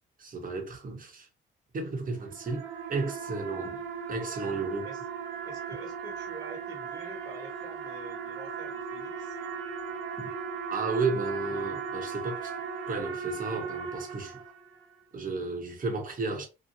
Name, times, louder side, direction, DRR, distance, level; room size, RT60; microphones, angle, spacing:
voice 1, 0.2-1.3 1.7-3.8 4.1-4.9 10.2-10.3 10.7-12.5 12.9-14.4 15.1-16.5, right 3 dB, 45° right, 1.2 m, -33 dB
sound 1, 2.1-14.8, right 6 dB, 90° right, 0.8 m, -37 dB
voice 2, 5.4-9.4, right 2 dB, 15° right, 1.3 m, -47 dB
2.8 x 2.4 x 2.7 m
cardioid pair, 90°, 20 cm